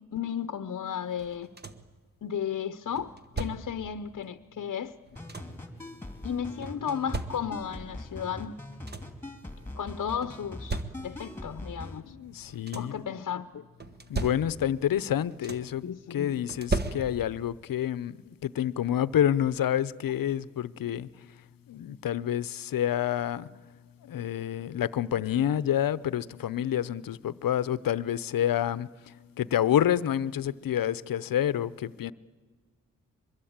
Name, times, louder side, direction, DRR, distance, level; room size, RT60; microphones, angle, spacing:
voice 1, 0.1-1.5 2.2-4.9 6.2-8.5 9.8-12.1 12.7-13.6 15.8-16.3, left 8 dB, 60° left, 0.8 m, -34 dB
sound 1, 1.2-2.0 3.0-3.9 4.8-5.7 6.6-7.8 8.4-8.5 8.7-9.3 10.2-11.4 12.3-13.1 13.8-14.8 15.1-15.9 16.5-17.5 18.8-18.9 19.4-19.6, right 3 dB, 30° right, 1.3 m, -37 dB
sound 2, 5.2-12.0, left 1 dB, 5° left, 2.9 m, -42 dB
voice 2, 12.0-13.0 14.1-15.8 16.1-21.1 21.7-23.5 24.0-32.1, left 10 dB, 90° left, 0.7 m, -28 dB
24.0 x 21.5 x 8.8 m
wide cardioid pair, 100°, 33 cm